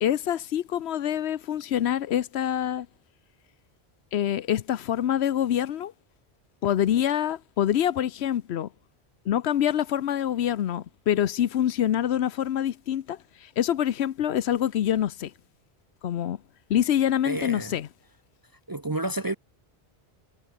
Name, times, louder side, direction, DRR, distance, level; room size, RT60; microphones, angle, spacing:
voice 1, 0.0-2.9 4.1-5.9 6.6-8.7 9.3-15.3 16.0-16.4 16.7-17.9, left 10 dB, 75° left, 1.0 m, -26 dB
voice 2, 17.2-17.8 18.7-19.3, right 2 dB, 25° right, 0.5 m, -30 dB
omnidirectional pair, 1.1 m